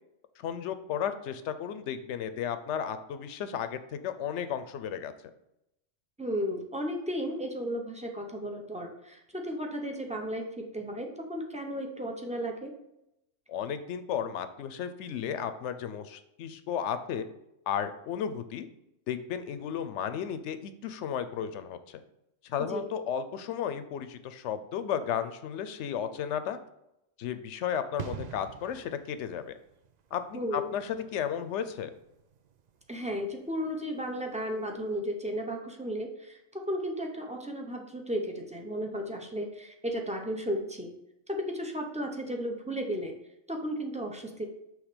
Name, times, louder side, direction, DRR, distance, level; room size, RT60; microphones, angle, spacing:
voice 1, 0.4-5.1 13.5-17.2 17.7-18.7 19.1-22.0 22.4-26.6 27.2-29.6 30.1-31.9, left 8 dB, 70° left, 11 dB, 0.8 m, -34 dB
voice 2, 6.2-12.7 22.6-22.8 30.3-30.7 32.9-40.9 41.3-43.1 43.5-44.5, equal, 10° right, 2 dB, 0.5 m, -34 dB
sound 1, 28.0-34.5 34.7-34.9, right 7 dB, 70° right, 0.4 m, -47 dB
6.4 x 3.3 x 5.0 m, 0.83 s
omnidirectional pair, 1.3 m